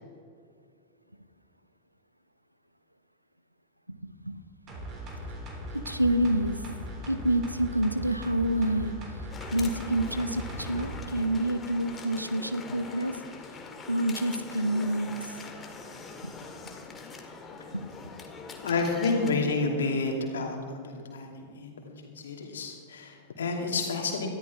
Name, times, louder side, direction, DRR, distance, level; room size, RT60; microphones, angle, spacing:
voice 1, 3.9-4.4 5.9-6.6 7.1-8.9 9.5-13.1 13.9-15.2 16.2-16.5 17.7-17.9, right 1 dB, 90° right, 11 dB, 0.8 m, -28 dB
sound 1, 4.7-11.0 11.4-11.5, left 1 dB, 35° right, 3.5 m, -39 dB
sound 2, 9.3-19.3, left 4 dB, 20° left, 1.8 m, -43 dB
voice 2, 18.6-24.3, left 3 dB, 65° left, 2 dB, 2.5 m, -30 dB
19.5 x 13.5 x 3.5 m, 2.2 s
figure-of-eight pair, 90°, 0 cm